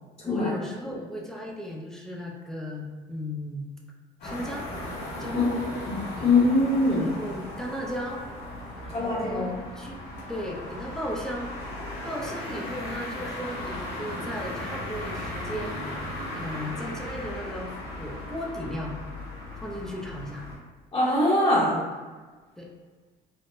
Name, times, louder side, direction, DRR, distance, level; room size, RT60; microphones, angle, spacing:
voice 1, 0.2-3.7 4.2-4.7 5.2-5.6 6.2-6.3 7.0-8.2 8.8-10.0 10.3-11.5 12.0-15.8 16.3-19.0 19.6-20.4 22.6-22.7, equal, 5° left, -2 dB, 0.5 m, -36 dB
sound 1, 4.2-20.5, left 1 dB, 70° left, 1.5 m, -37 dB
voice 2, 5.8-7.1 8.9-9.4 20.9-21.8, left 2 dB, 35° left, -6 dB, 0.8 m, -22 dB
3.5 x 2.0 x 2.5 m, 1.3 s
cardioid pair, 110°, 17 cm